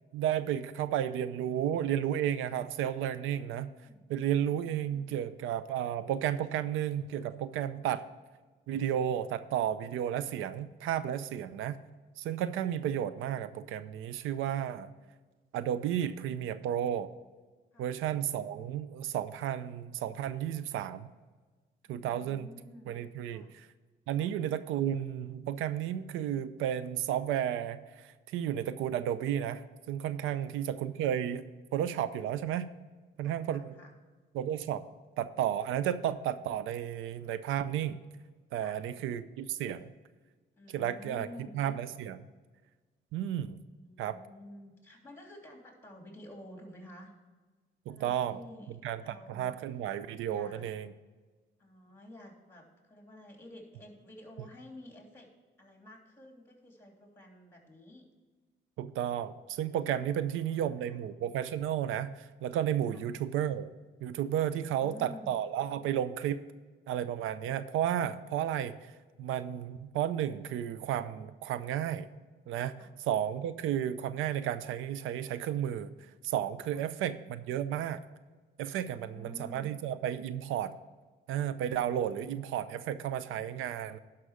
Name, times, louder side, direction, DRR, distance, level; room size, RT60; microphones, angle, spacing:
voice 1, 0.1-3.7 4.1-8.0 8.7-11.8 12.2-14.9 15.5-17.1 17.8-21.1 21.9-22.5 22.9-23.7 24.1-31.4 31.7-32.7 33.2-33.7 34.3-34.8 35.2-38.0 38.5-39.9 40.7-41.3 41.5-42.2 43.1-43.6 44.0-44.2 47.9-48.4 48.8-50.9 58.8-63.7 64.0-66.5 66.9-68.9 69.2-72.1 72.5-78.0 78.6-80.7 81.3-84.0, right 10 dB, 90° right, 14 dB, 0.5 m, -33 dB
voice 2, 3.4-4.0 4.3-5.2 7.7-7.9 17.7-17.9 21.9-22.9 23.3-23.5 24.2-24.3 30.2-30.4 33.2-33.9 38.6-38.8 40.5-41.6 43.7-47.1 47.9-48.7 49.0-49.5 50.2-50.7 51.6-55.3 55.6-58.1 60.3-61.0 62.9-63.0 64.5-65.3 72.8-72.9 76.7-76.9 78.8-79.7, left 1 dB, 10° left, 1 dB, 3.1 m, -51 dB
11.5 x 5.8 x 5.0 m, 1.3 s
cardioid pair, 90°, 20 cm